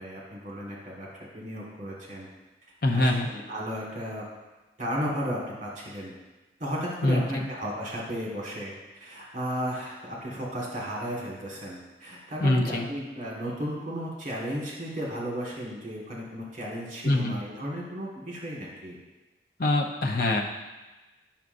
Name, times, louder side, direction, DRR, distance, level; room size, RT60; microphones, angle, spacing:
voice 1, 0.0-2.3 2.9-4.2 4.8-6.1 6.6-19.0, equal, 45° right, -4 dB, 1.6 m, -34 dB
voice 2, 2.8-3.3 7.0-7.5 12.4-12.9 17.0-17.4 19.6-20.4, left 1 dB, 55° left, 0 dB, 0.7 m, -24 dB
9.6 x 5.9 x 2.6 m, 1.1 s
head